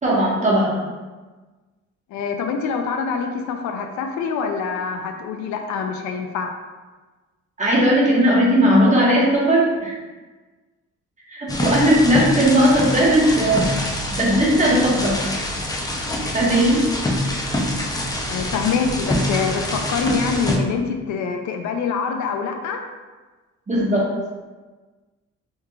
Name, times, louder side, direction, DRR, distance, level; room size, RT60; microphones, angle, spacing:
voice 1, 0.0-0.8 7.6-10.0 11.3-13.8 14.1-15.3 16.3-16.8 23.7-24.1, equal, 25° right, -5 dB, 1.1 m, -17 dB
voice 2, 2.1-6.5 18.3-22.8, left 5 dB, 70° left, 4 dB, 0.4 m, -25 dB
sound 1, 11.5-20.6, left 1 dB, 15° left, 0.4 m, -25 dB
3.5 x 3.0 x 2.3 m, 1.3 s
cardioid pair, 90°, 30 cm